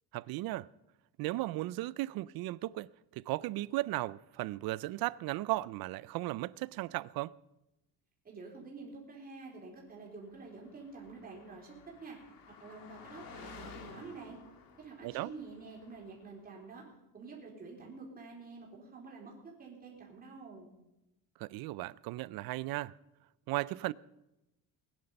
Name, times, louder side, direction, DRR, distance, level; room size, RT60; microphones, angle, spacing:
voice 1, 0.1-0.7 1.2-7.3 15.0-15.3 21.4-22.9 23.5-23.9, right 18 dB, 70° right, 0.5 m, -36 dB
voice 2, 8.2-12.2 12.6-14.4 14.8-16.8 17.1-19.3 19.6-20.7, right 4 dB, 25° right, 3.8 m, -48 dB
Car passing by, 10.4-16.3, left 5 dB, 65° left, 2.3 m, -53 dB
20.5 x 10.0 x 5.3 m
cardioid pair, 175°, 37 cm